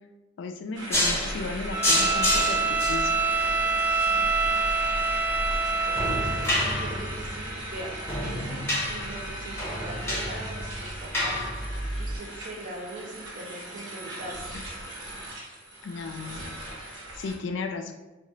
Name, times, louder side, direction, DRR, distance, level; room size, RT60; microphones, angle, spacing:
voice 1, 0.4-3.1 14.5-14.6 15.8-16.5 16.8-17.9, left 4 dB, 70° left, 5 dB, 0.3 m, -35 dB
sound 1, 0.7-17.4, right 1 dB, 85° right, 0.8 m, -39 dB
sound 2, 0.9-12.2, left 1 dB, 15° left, 0.8 m, -29 dB
Bowed string instrument, 1.7-6.6, right 4 dB, 10° right, 0.3 m, -26 dB
voice 2, 4.1-4.4 5.9-8.6 8.9-11.5 12.0-14.6, right 1 dB, 45° right, 0 dB, 0.6 m, -41 dB
2.4 x 2.1 x 3.7 m, 1.1 s
head